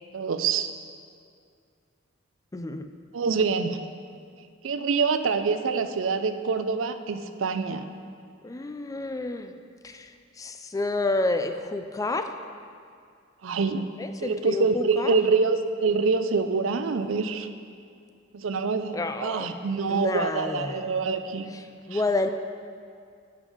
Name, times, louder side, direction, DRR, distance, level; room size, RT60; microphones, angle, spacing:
voice 1, 0.1-0.7 3.1-3.8 4.6-7.9 13.4-13.9 14.2-17.5 18.3-21.5 21.9-22.0, right 4 dB, 75° right, 9 dB, 0.5 m, -25 dB
voice 2, 2.5-2.9 8.4-9.6 9.8-12.3 14.0-15.2 18.9-19.5 19.9-20.9 21.5-22.3, left 2 dB, 15° left, 8 dB, 0.4 m, -29 dB
12.5 x 5.5 x 4.9 m, 2.3 s
head